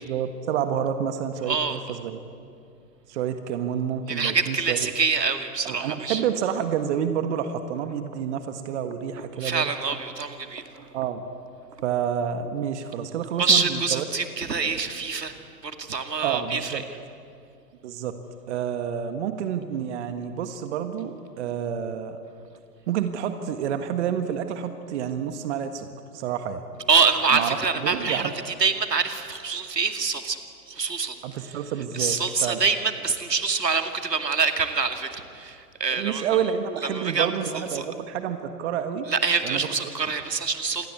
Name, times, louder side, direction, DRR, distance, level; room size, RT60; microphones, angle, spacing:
voice 1, 0.0-2.2 3.1-4.9 5.6-9.7 10.9-11.2 11.8-14.0 16.2-16.8 17.8-18.2 18.5-22.2 22.9-26.6 27.3-28.3 31.2-32.6 35.9-39.1 39.4-39.7, right 8 dB, 45° right, 8 dB, 1.6 m, -29 dB
voice 2, 1.5-1.8 4.1-6.2 9.4-10.9 13.4-15.3 15.6-16.8 26.9-30.4 30.7-31.2 31.9-36.3 36.9-37.3 37.7-37.8 39.1-40.9, right 5 dB, 80° right, 7 dB, 2.5 m, -25 dB
27.5 x 20.5 x 8.5 m, 2.5 s
figure-of-eight pair, 115°, 48 cm